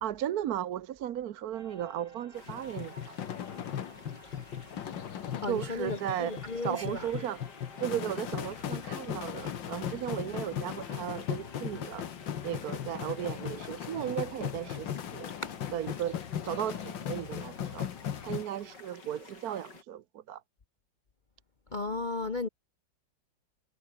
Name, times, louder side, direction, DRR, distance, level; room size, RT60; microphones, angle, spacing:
voice 1, 0.0-3.2 5.5-7.4 7.8-12.1 12.4-15.3 15.7-17.9 18.2-20.4, right 11 dB, 60° right, 1.2 m, -36 dB
sound 1, 1.5-18.8, right 1 dB, 25° right, 7.4 m, -58 dB
sound 2, 2.3-19.8, left 4 dB, 70° left, 4.1 m, -52 dB
sound 3, 2.5-18.4, left 9 dB, 85° left, 2.0 m, -38 dB
voice 2, 5.4-7.1 15.4-15.5 21.7-22.5, left 3 dB, 35° left, 0.9 m, -35 dB
omnidirectional pair, 2.0 m